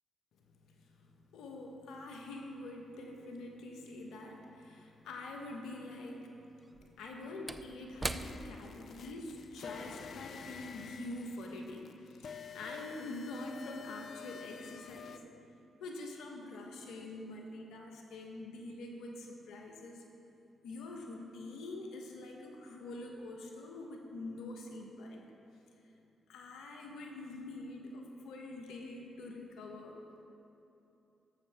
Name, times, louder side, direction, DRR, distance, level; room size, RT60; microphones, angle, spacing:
voice 1, 0.5-6.5 6.8-15.2 15.8-20.0 20.6-25.2 26.3-30.0, left 2 dB, 80° left, 1 dB, 1.1 m, -45 dB
Slam / Wood, 5.0-5.1 6.6-11.3 11.6-11.8, right 2 dB, 25° right, 0.4 m, -44 dB
sound 1, 8.1-15.2, left 7 dB, 65° left, 0.3 m, -49 dB
13.0 x 7.3 x 3.5 m, 2.8 s
supercardioid pair, 50°, 0 cm